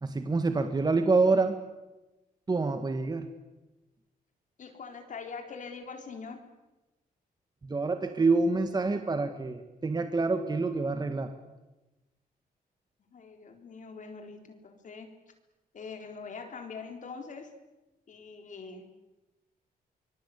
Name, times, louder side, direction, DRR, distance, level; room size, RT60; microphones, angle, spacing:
voice 1, 0.0-1.6 2.5-3.3 7.6-11.3, right 3 dB, 25° right, 8 dB, 1.8 m, -27 dB
voice 2, 4.6-6.4 13.1-15.1 15.7-17.5 18.1-18.9, left 5 dB, 55° left, 5 dB, 4.0 m, -43 dB
25.0 x 22.0 x 8.7 m, 1.0 s
cardioid pair, 110°, 16 cm